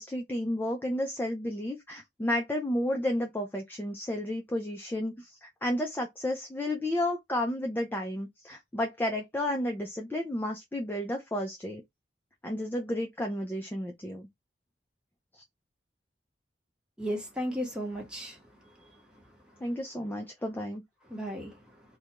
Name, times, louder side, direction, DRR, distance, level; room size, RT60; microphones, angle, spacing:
voice 1, 0.0-11.8 12.4-14.3 19.6-20.8, left 1 dB, 10° left, 0.3 m, -32 dB
voice 2, 17.0-18.4 18.8-19.2 21.1-21.6, equal, 5° right, 0.9 m, -35 dB
2.3 x 2.2 x 2.8 m
head